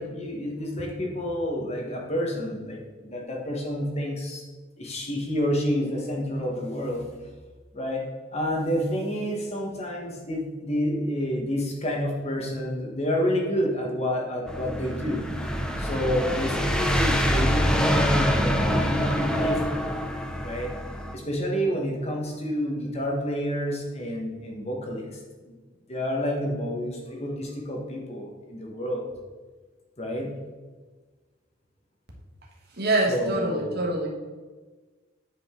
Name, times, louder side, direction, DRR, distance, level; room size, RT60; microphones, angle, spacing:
voice 1, 0.0-4.4 4.8-7.1 7.7-8.0 8.3-15.2 15.8-19.9 20.4-20.7 21.1-25.5 25.9-29.1 30.0-30.3 33.1-33.7, equal, 35° left, 0 dB, 1.4 m, -29 dB
sound 1, 14.5-21.1, equal, 5° left, 0.6 m, -25 dB
voice 2, 32.8-34.1, right 2 dB, 55° right, -1 dB, 1.4 m, -25 dB
8.7 x 5.2 x 3.8 m, 1.3 s
head